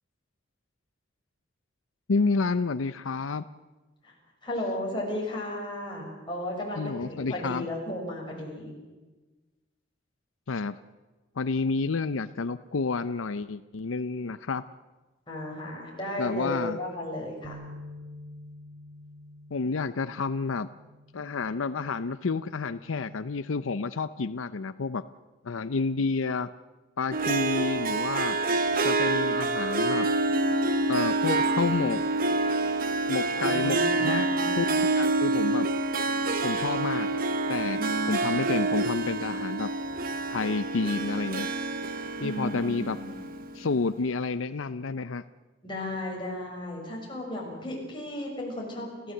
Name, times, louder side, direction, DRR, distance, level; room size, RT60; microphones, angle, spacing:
voice 1, 2.1-3.4 6.8-7.7 10.5-10.7 11.4-14.6 16.2-16.8 19.5-20.7 21.1-25.0 25.4-26.5 27.0-28.4 28.8-30.1 30.9-32.0 33.1-34.7 34.9-35.7 36.4-37.1 37.5-37.8 38.1-39.7 40.3-41.5 42.2-43.0 43.5-45.2, left 4 dB, 90° left, 13 dB, 0.6 m, -29 dB
voice 2, 4.4-8.7 15.3-17.6 33.4-34.8 37.7-38.1 42.2-43.2 45.6-49.1, left 1 dB, 25° left, -2 dB, 6.6 m, -35 dB
sound 1, 17.4-23.7, left 1 dB, 80° right, 2.9 m, -49 dB
Harp, 27.1-43.6, right 2 dB, 45° right, 1.2 m, -27 dB
29.5 x 15.5 x 7.9 m, 1.2 s
head